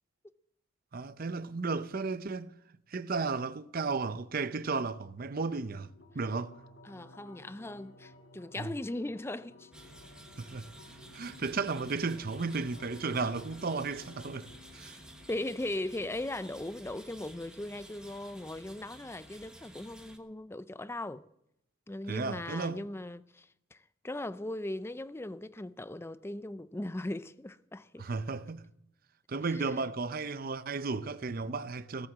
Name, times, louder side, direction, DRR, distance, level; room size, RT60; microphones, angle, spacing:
voice 1, 0.9-2.5 2.9-5.9 6.1-6.5 8.6-8.7 10.4-10.7 11.1-14.5 14.7-15.0 22.1-22.8 28.0-28.6 29.3-32.1, right 4 dB, 45° right, 0.6 m, -34 dB
sound 1, 5.5-16.5, left 2 dB, 60° left, 1.6 m, -55 dB
voice 2, 6.8-9.7 15.3-21.3 21.9-28.1 29.5-29.6, left 1 dB, 10° left, 0.4 m, -39 dB
sound 2, 9.7-20.2, right 1 dB, 5° right, 1.1 m, -53 dB
17.5 x 7.8 x 7.4 m
head